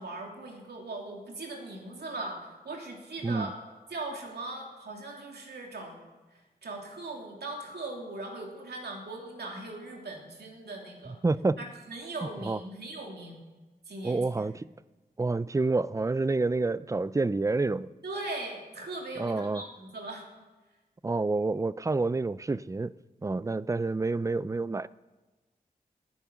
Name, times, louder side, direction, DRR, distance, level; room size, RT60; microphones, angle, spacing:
voice 1, 0.0-3.5 3.9-6.0 6.3-11.2 11.6-13.4 13.8-14.5 18.0-20.2, right 2 dB, 90° right, 3.0 m, -39 dB
voice 2, 11.2-11.6 12.4-12.6 14.0-14.6 15.2-17.9 19.2-19.6 21.0-22.9 23.2-24.9, right 3 dB, 20° right, 0.4 m, -28 dB
19.5 x 10.5 x 6.0 m
wide cardioid pair, 80°, 16 cm